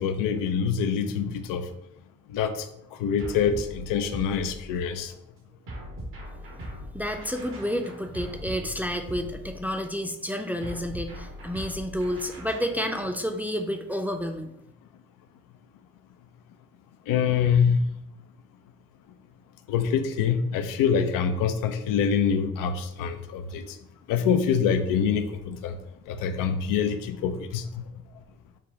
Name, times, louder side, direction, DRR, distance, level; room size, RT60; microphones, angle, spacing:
voice 1, 0.0-1.7 2.3-2.7 3.0-5.1 17.1-17.8 19.7-23.7 24.1-25.8 26.1-27.8, left 7 dB, 80° left, 8 dB, 0.5 m, -25 dB
sound 1, 3.2-4.9 5.7-9.8 10.6-13.1, equal, 80° right, 1.3 m, -40 dB
voice 2, 6.9-14.5, equal, 5° right, 4 dB, 0.5 m, -30 dB
4.9 x 2.2 x 3.8 m, 0.82 s
hypercardioid pair, 45°, 32 cm